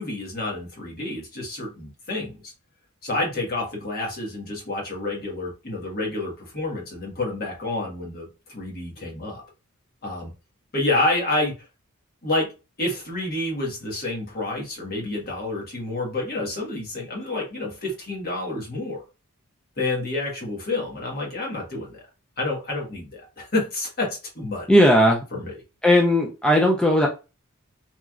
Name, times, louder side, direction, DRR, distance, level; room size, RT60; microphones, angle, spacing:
voice 1, 0.0-2.5 3.0-9.4 10.0-10.3 10.7-11.5 12.2-12.5 12.8-19.0 19.8-22.0 22.4-24.1 24.3-24.7 25.3-25.5, left 2 dB, 45° left, -1 dB, 1.2 m, -28 dB
voice 2, 24.7-25.2 25.8-27.1, equal, 5° left, 0 dB, 0.3 m, -17 dB
3.0 x 2.4 x 2.3 m, 0.29 s
head